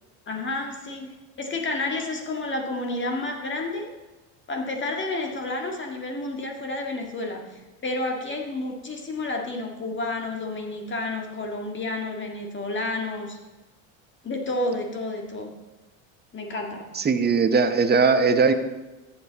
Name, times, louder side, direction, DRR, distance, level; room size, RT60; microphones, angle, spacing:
voice 1, 0.3-1.1 1.4-3.9 4.5-13.4 14.2-15.5 16.3-16.8, left 2 dB, 25° left, 2 dB, 1.9 m, -30 dB
voice 2, 17.0-18.5, right 5 dB, 25° right, 9 dB, 1.0 m, -19 dB
14.0 x 7.4 x 4.1 m, 1.1 s
supercardioid pair, 95°, 42 cm